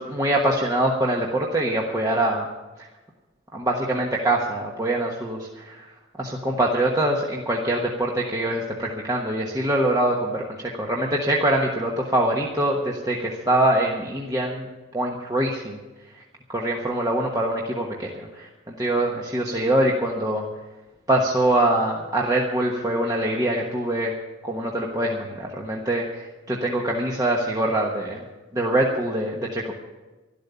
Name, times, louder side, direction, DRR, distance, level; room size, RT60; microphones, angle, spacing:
voice 1, 0.0-2.5 2.8-2.9 3.5-14.7 14.9-15.8 16.5-20.4 21.1-24.1 24.4-28.2 28.5-29.8, right 1 dB, 15° right, -2 dB, 1.2 m, -24 dB
12.5 x 12.0 x 6.9 m, 1.2 s
head